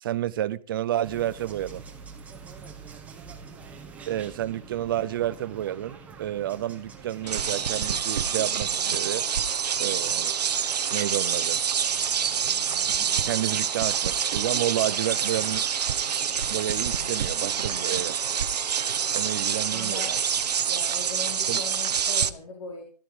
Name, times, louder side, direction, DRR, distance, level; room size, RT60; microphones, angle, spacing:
voice 1, 0.0-1.8 4.1-9.2 9.8-10.3 10.9-11.6 13.2-15.6 16.5-18.4 19.1-20.1 21.5-21.6, right 12 dB, 35° right, 0.6 m, -30 dB
sound 1, 1.0-8.0, right 5 dB, 5° right, 1.8 m, -45 dB
sound 2, 7.2-20.5, left 4 dB, 70° left, 3.8 m, -46 dB
sound 3, 7.3-22.3, right 8 dB, 75° right, 1.2 m, -27 dB
voice 2, 19.6-20.1 20.7-22.8, left 4 dB, 50° left, 4.5 m, -39 dB
15.5 x 13.0 x 5.1 m
hypercardioid pair, 165°, 21 cm